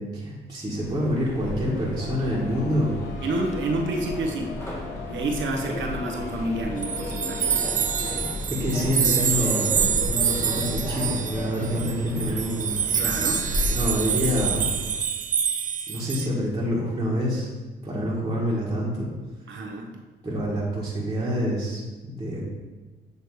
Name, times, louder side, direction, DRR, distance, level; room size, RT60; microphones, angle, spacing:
voice 1, 0.0-2.9 8.6-12.7 13.7-14.6 15.9-17.5 17.8-19.1 20.2-22.4, equal, 20° right, -7 dB, 1.7 m, -27 dB
Subway metro underground, 0.7-15.1, left 1 dB, 15° left, 1.7 m, -33 dB
sound 1, 2.0-8.4, left 9 dB, 70° left, 0.5 m, -41 dB
voice 2, 3.2-4.5 5.1-7.8 13.0-13.5 19.5-19.9, right 2 dB, 75° right, 2 dB, 1.1 m, -29 dB
sound 2, 6.8-16.3, right 8 dB, 40° right, 0.5 m, -26 dB
8.1 x 3.2 x 4.8 m, 1.2 s
cardioid pair, 90°, 20 cm